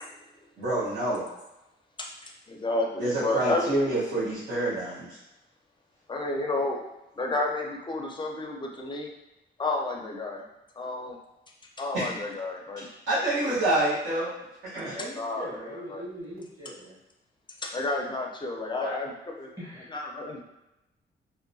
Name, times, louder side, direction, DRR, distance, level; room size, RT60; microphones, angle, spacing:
voice 1, 0.6-1.3 3.0-5.2 11.9-12.1 13.1-14.3 14.7-15.0 18.8-18.9, right 1 dB, 65° right, -12 dB, 1.0 m, -27 dB
voice 2, 2.5-3.8 6.1-6.8 7.2-9.1 9.6-10.4 10.8-11.2 11.8-12.9 15.2-16.1 17.6-19.5 19.9-20.4, left 2 dB, 25° left, 1 dB, 0.4 m, -31 dB
voice 3, 14.9-17.0 19.6-19.9, right 1 dB, 15° right, -10 dB, 1.0 m, -40 dB
2.8 x 2.1 x 2.6 m, 0.94 s
cardioid pair, 100°, 21 cm